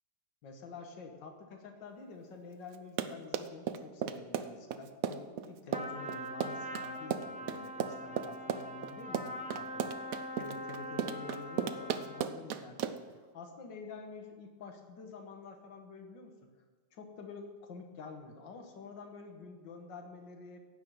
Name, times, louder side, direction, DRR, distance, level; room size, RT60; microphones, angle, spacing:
voice 1, 0.4-10.0 10.3-12.9 13.3-16.5 16.9-20.6, left 4 dB, 60° left, 4 dB, 2.1 m, -48 dB
Run, 2.7-13.2, right 8 dB, 90° right, 0.7 m, -35 dB
Trumpet, 5.7-12.4, equal, 10° right, 0.3 m, -43 dB
15.5 x 6.5 x 9.2 m, 1.5 s
omnidirectional pair, 2.3 m